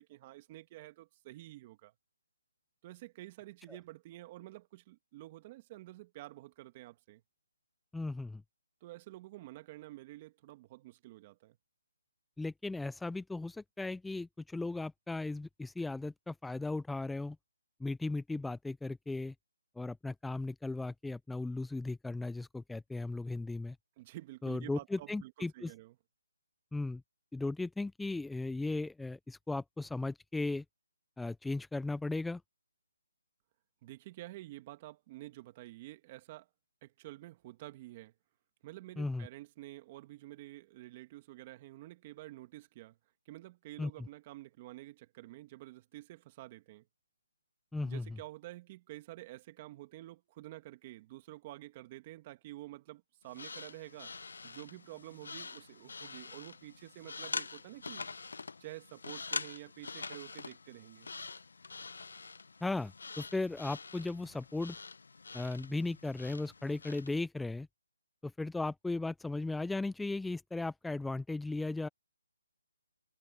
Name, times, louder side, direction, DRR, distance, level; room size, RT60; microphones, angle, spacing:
voice 1, 0.0-1.9 2.8-7.2 8.8-11.6 24.0-25.9 33.8-36.5 36.8-38.1 38.6-43.0 43.3-46.9 47.8-54.1 54.4-58.1 58.6-61.1, right 17 dB, 25° right, 2.4 m, -49 dB
voice 2, 7.9-8.4 12.4-17.4 17.8-19.3 19.8-23.8 24.4-25.7 26.7-27.0 27.3-30.6 31.2-32.4 39.0-39.3 43.8-43.9 47.7-48.1 62.6-64.8 65.3-67.7 68.2-71.9, left 2 dB, 5° left, 0.4 m, -36 dB
sound 1, 53.3-67.1, left 4 dB, 75° left, 0.9 m, -45 dB
hypercardioid pair, 160°, 0 cm